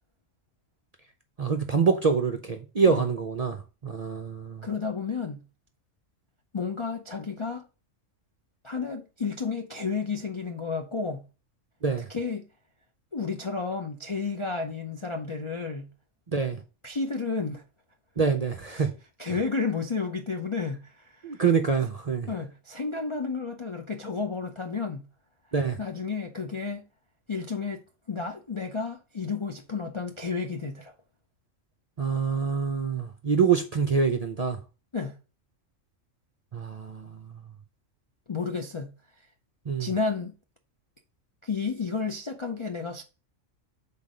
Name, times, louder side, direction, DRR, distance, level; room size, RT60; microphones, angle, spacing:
voice 1, 1.4-4.7 11.8-12.1 16.3-16.6 18.2-18.9 21.2-22.3 25.5-25.8 32.0-34.6 36.5-37.3 39.7-39.9, right 5 dB, 40° right, 0.6 m, -26 dB
voice 2, 4.6-5.4 6.5-7.7 8.6-11.2 12.1-12.4 13.1-15.9 16.8-17.6 18.7-18.9 19.2-21.4 22.3-25.1 25.8-26.8 27.3-27.8 28.1-30.9 34.9-35.2 38.3-38.9 39.8-40.3 41.4-43.0, left 4 dB, 40° left, 0.4 m, -31 dB
5.7 x 4.0 x 5.0 m
omnidirectional pair, 1.3 m